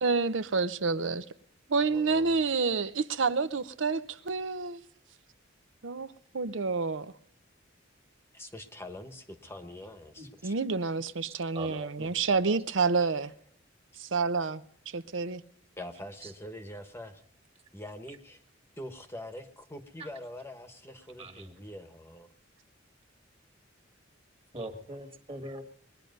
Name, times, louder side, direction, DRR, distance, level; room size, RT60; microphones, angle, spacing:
voice 1, 0.0-1.3 1.7-4.8 5.8-6.1 6.3-7.1 10.4-13.3 14.0-15.4, right 4 dB, 65° right, 0.7 m, -29 dB
voice 2, 1.9-2.4 8.3-10.5 15.8-17.2 17.7-18.4 18.8-22.3, left 1 dB, 10° left, 1.1 m, -44 dB
voice 3, 11.5-12.6 16.2-16.3 20.0-20.1 21.2-21.6 24.5-25.6, right 1 dB, 30° right, 2.0 m, -42 dB
22.0 x 10.0 x 5.2 m
head